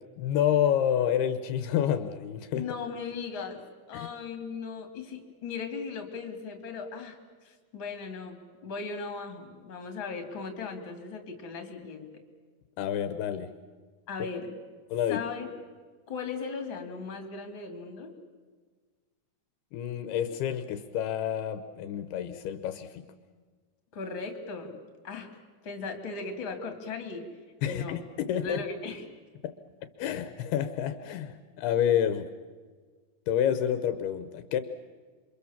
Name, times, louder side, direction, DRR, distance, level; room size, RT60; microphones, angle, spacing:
voice 1, 0.2-2.7 3.9-4.1 12.8-13.5 14.9-15.2 19.7-23.1 27.6-28.6 29.4-29.5 30.0-32.3 33.3-34.6, left 9 dB, 80° left, 10 dB, 2.9 m, -28 dB
voice 2, 2.5-3.6 3.9-12.1 14.1-14.6 15.1-15.5 16.1-18.1 23.9-24.8 25.0-25.3 25.6-27.3 27.6-28.0 28.4-29.0, left 4 dB, 35° left, 6 dB, 3.0 m, -38 dB
27.5 x 24.5 x 7.3 m, 1.5 s
omnidirectional pair, 4.7 m